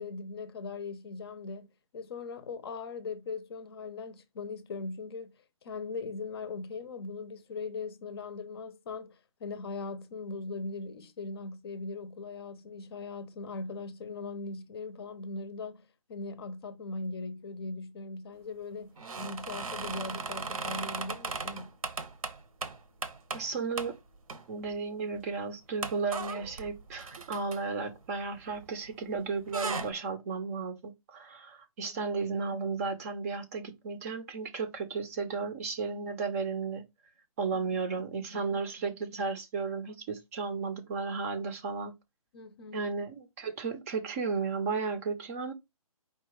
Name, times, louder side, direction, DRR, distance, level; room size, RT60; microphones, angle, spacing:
voice 1, 0.0-1.7 1.9-5.3 5.6-21.8 31.8-32.0 42.3-42.9, left 3 dB, 45° left, 0.6 m, -40 dB
sound 1, 19.0-23.5 23.8-23.9 24.3-24.8 25.1-25.2 25.8-28.9 29.2-29.9, right 4 dB, 70° right, 0.9 m, -37 dB
voice 2, 23.3-24.0 24.5-36.9 37.4-41.9 42.7-45.5, right 4 dB, 25° right, 0.6 m, -34 dB
4.8 x 2.3 x 4.6 m
hypercardioid pair, 150°, 19 cm